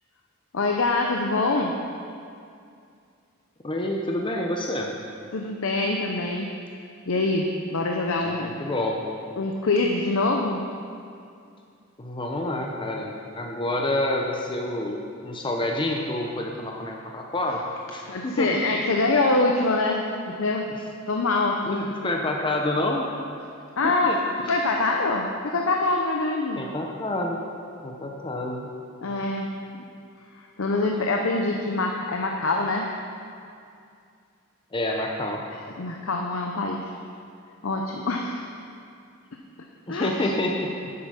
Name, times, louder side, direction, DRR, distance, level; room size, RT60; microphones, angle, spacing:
voice 1, 0.5-1.7 5.3-6.5 7.1-8.5 9.4-10.6 18.1-20.0 20.4-20.6 21.1-21.8 23.8-24.1 24.5-26.7 29.0-29.5 30.6-32.8 35.8-36.9 37.6-38.5 39.9-40.3, left 2 dB, 80° left, 1 dB, 0.7 m, -24 dB
voice 2, 3.6-4.9 8.2-9.0 12.0-13.1 13.4-17.6 17.9-18.5 20.7-20.8 21.6-23.0 23.8-24.2 26.6-27.4 27.8-28.7 34.7-35.4 39.9-40.7, left 1 dB, 25° left, 0 dB, 0.7 m, -28 dB
9.7 x 7.8 x 5.6 m, 2.4 s
head